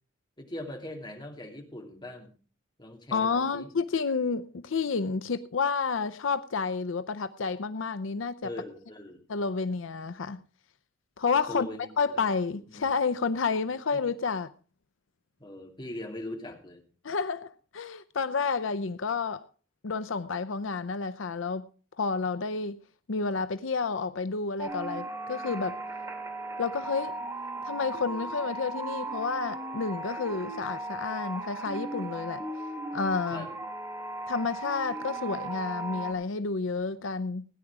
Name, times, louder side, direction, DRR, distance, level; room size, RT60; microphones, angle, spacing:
voice 1, 0.4-2.3 2.8-3.7 8.4-9.2 11.5-12.2 12.7-12.8 13.9-14.0 15.4-16.8 33.3-33.5, left 1 dB, 25° left, 2.8 m, -40 dB
voice 2, 3.1-8.5 9.3-10.4 11.2-11.7 12.0-14.5 17.0-19.4 19.8-21.7 22.0-22.8 23.1-25.8 26.6-27.2 27.6-32.4 32.9-33.5 34.3-37.5, left 4 dB, 70° left, 0.6 m, -30 dB
sound 1, 24.6-36.1, right 2 dB, 15° right, 2.5 m, -37 dB
17.0 x 10.0 x 4.8 m
head